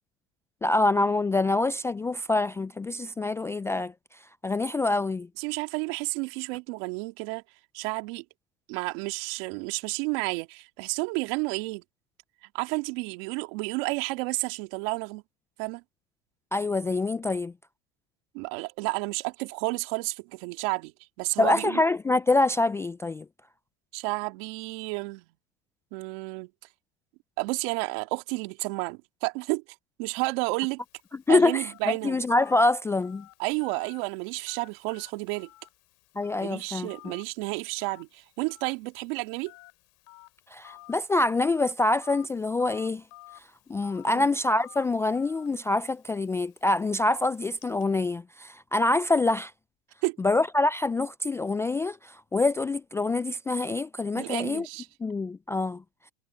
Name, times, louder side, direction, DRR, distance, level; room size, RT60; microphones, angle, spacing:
voice 1, 0.6-3.9 4.4-5.3 16.5-17.5 21.4-23.3 31.3-33.3 36.2-37.1 40.5-43.0 43.7-49.5 50.2-54.7 55.0-55.8, left 2 dB, 10° left, 0.3 m, -25 dB
voice 2, 5.4-7.4 7.7-8.2 8.7-11.8 12.5-15.2 15.6-15.8 18.3-20.9 21.2-21.8 23.9-25.3 25.9-26.5 27.4-29.6 30.0-30.8 31.3-32.2 33.4-35.5 36.3-39.5 44.0-44.3 50.0-50.2 54.1-54.9, right 27 dB, 65° right, 2.7 m, -31 dB
Telephone, 30.8-47.8, left 20 dB, 55° left, 6.1 m, -54 dB
supercardioid pair, 110°, 32 cm